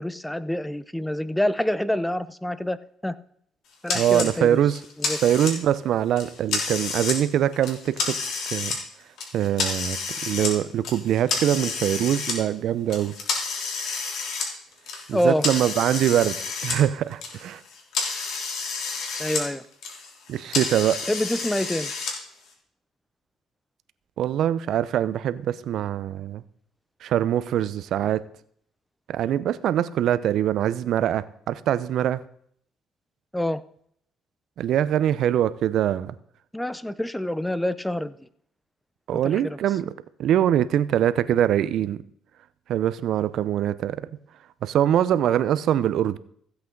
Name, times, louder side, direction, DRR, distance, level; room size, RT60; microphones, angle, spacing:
voice 1, 0.0-2.8 3.0-3.2 3.8-4.6 5.0-5.2 15.1-15.5 19.2-19.6 21.1-21.9 33.3-33.6 36.5-38.2 39.1-39.6, left 1 dB, 5° left, 0.6 m, -26 dB
sound 1, 3.9-4.3 4.7-5.8 6.2-7.2 7.5-8.8 9.2-10.5 10.8-12.3 12.9-16.8 17.1-19.4 19.7-22.1, left 4 dB, 70° left, 3.2 m, -30 dB
voice 2, 3.9-4.8 5.2-8.2 8.5-8.8 9.3-10.0 10.3-13.1 15.1-17.6 20.3-21.0 24.2-26.4 27.0-28.2 29.1-32.2 34.6-36.1 39.1-39.9 40.2-42.0 42.7-44.1 44.6-46.2, right 11 dB, 70° right, 0.7 m, -23 dB
15.0 x 8.2 x 3.9 m
cardioid pair, 90°, 0 cm